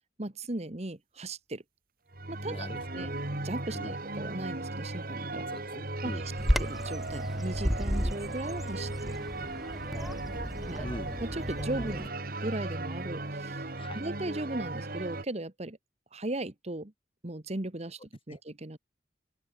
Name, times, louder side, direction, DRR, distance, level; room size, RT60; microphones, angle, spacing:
voice 1, 0.2-1.6 2.3-3.1 3.4-5.5 6.0-6.1 6.6-9.2 10.1-10.9 11.2-12.1 12.4-13.7 13.9-15.8 16.1-16.9 17.2-18.0 18.3-18.8, right 1 dB, 35° right, 1.5 m, -37 dB
sound 1, 2.1-15.2, right 2 dB, 55° right, 2.9 m, -37 dB
voice 2, 2.4-3.1 3.7-4.0 5.5-6.3 9.9-11.1 11.8-11.9 13.7-14.1 18.3-18.4, left 1 dB, 30° left, 3.7 m, -43 dB
Bird vocalization bird call bird song, 6.4-12.1, equal, ahead, 2.3 m, -33 dB
open air
head